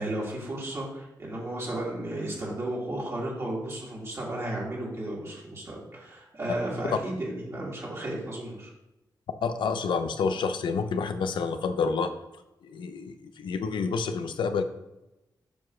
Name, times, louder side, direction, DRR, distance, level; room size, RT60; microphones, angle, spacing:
voice 1, 0.0-8.7, right 1 dB, 35° right, -5 dB, 2.1 m, -34 dB
voice 2, 9.4-12.1 12.6-14.6, left 5 dB, 90° left, 9 dB, 0.6 m, -28 dB
6.9 x 3.1 x 6.1 m, 0.95 s
wide cardioid pair, 135°, 8 cm